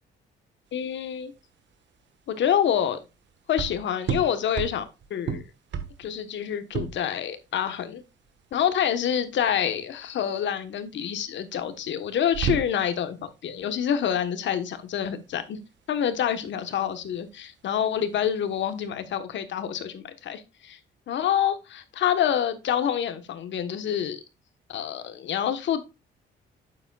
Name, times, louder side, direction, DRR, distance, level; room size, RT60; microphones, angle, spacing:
voice 1, 0.7-1.3 2.3-3.0 3.5-4.8 5.1-5.4 6.0-8.0 8.5-15.6 15.9-20.8 21.1-24.2 24.7-25.8, left 9 dB, 70° left, 10 dB, 1.1 m, -27 dB
sound 1, 0.7-18.9, right 7 dB, 65° right, 1.3 m, -37 dB
8.6 x 7.1 x 2.3 m, 0.27 s
cardioid pair, 90°, 20 cm